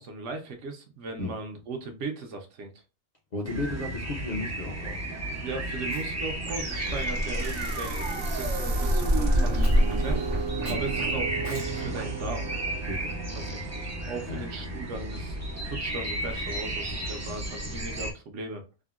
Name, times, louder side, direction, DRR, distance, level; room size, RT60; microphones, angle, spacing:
voice 1, 0.0-2.7 5.4-12.5 13.5-15.4 15.6-18.6, right 3 dB, 70° right, 0.9 m, -38 dB
voice 2, 3.3-5.0 10.7-10.8 12.9-13.2 14.3-14.4 17.2-17.3, left 2 dB, 45° left, 0.6 m, -34 dB
sound 1, 3.4-18.1, equal, 25° right, 0.3 m, -30 dB
Chewing mastication, 5.8-6.3 7.0-7.6 8.2-8.5 9.6-9.9 10.7-10.9 11.4-11.8, left 2 dB, 75° left, 1.5 m, -49 dB
sound 2, 6.4-15.6, right 5 dB, 90° right, 1.1 m, -36 dB
3.6 x 2.0 x 2.3 m
omnidirectional pair, 1.4 m